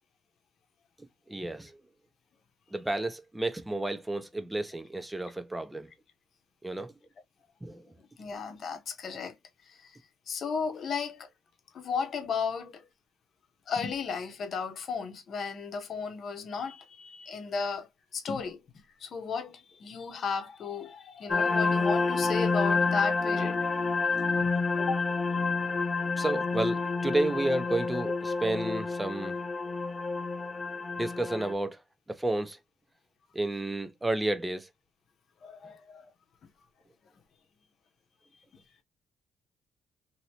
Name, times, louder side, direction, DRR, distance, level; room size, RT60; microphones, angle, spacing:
voice 1, 1.3-1.7 2.7-5.9 6.6-6.9 7.6-7.8 26.2-29.3 31.0-31.8 32.1-32.6 33.3-34.7, right 2 dB, 10° right, 0.6 m, -31 dB
voice 2, 8.0-9.4 9.7-9.9 10.3-11.3 11.7-12.9 13.7-18.6 19.0-23.6 24.8-25.0 35.4-36.1 38.5-38.6, left 5 dB, 60° left, 0.9 m, -34 dB
sound 1, 21.3-31.5, left 4 dB, 35° left, 0.5 m, -29 dB
3.0 x 2.7 x 2.8 m
cardioid pair, 90°, 0 cm